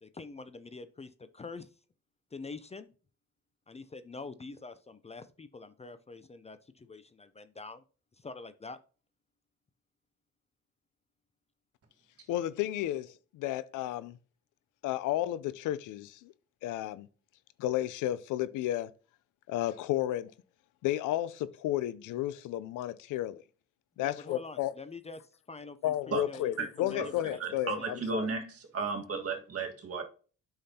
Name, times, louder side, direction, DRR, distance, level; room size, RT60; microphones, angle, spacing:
voice 1, 0.0-1.7 2.3-2.9 3.7-7.8 8.2-8.8 24.0-27.4 27.8-27.9, left 3 dB, 20° left, 0.5 m, -45 dB
voice 2, 12.3-14.2 14.8-16.3 16.6-17.1 17.6-18.9 19.5-20.3 20.8-23.4 24.0-24.7 25.8-28.3, left 13 dB, 90° left, 0.6 m, -32 dB
voice 3, 27.4-30.0, right 4 dB, 50° right, 1.8 m, -34 dB
8.5 x 5.8 x 2.8 m
cardioid pair, 90°, 30 cm